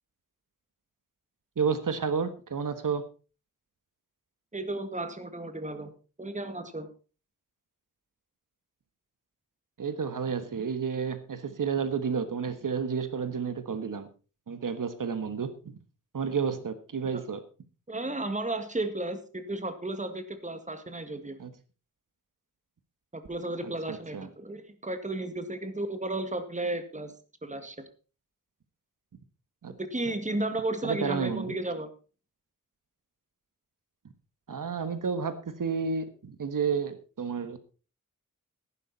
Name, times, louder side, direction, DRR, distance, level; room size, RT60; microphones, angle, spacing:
voice 1, 1.6-3.0 9.8-14.1 14.5-15.8 16.1-17.4 21.4-21.5 23.9-24.3 29.6-29.7 30.8-31.6 34.5-37.6, right 6 dB, 75° right, 11 dB, 1.5 m, -31 dB
voice 2, 4.5-5.9 6.2-6.9 17.1-17.2 17.9-21.4 23.1-27.1 27.4-27.8 29.8-31.9, right 2 dB, 20° right, 9 dB, 2.0 m, -33 dB
15.0 x 11.5 x 4.2 m, 0.35 s
wide cardioid pair, 100°, 32 cm